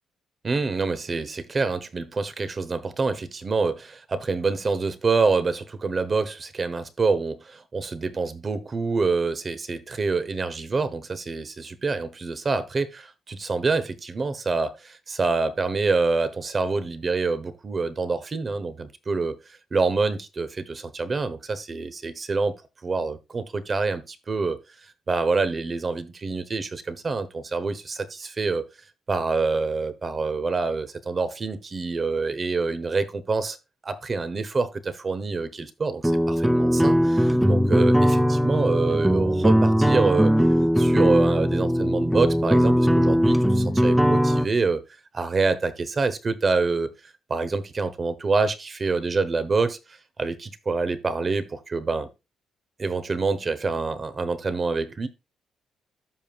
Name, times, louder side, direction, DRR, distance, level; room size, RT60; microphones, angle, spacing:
voice 1, 0.4-19.4 19.7-22.6 22.8-24.6 25.1-28.6 29.1-33.6 33.8-40.5 40.8-44.8 45.1-46.9 47.3-52.1 52.8-55.1, right 4 dB, 35° right, 0.9 m, -26 dB
sound 1, 36.0-44.5, equal, 5° right, 0.6 m, -20 dB
13.0 x 5.3 x 2.4 m
cardioid pair, 90°, 0 cm